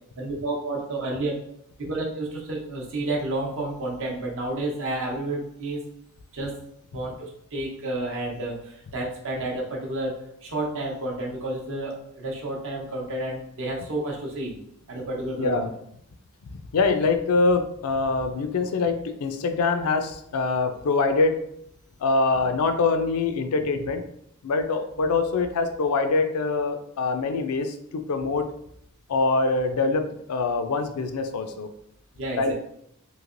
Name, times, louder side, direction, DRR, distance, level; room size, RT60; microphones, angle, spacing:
voice 1, 0.2-1.3 1.8-5.8 6.3-6.6 6.9-10.2 10.4-14.5 14.9-15.6 32.2-32.5, right 2 dB, 60° right, -1 dB, 0.7 m, -30 dB
voice 2, 15.4-15.7 16.5-21.4 22.0-24.0 24.4-28.5 29.1-31.7 32.4-32.5, left 3 dB, 75° left, 7 dB, 0.4 m, -24 dB
3.1 x 2.8 x 2.5 m, 0.74 s
head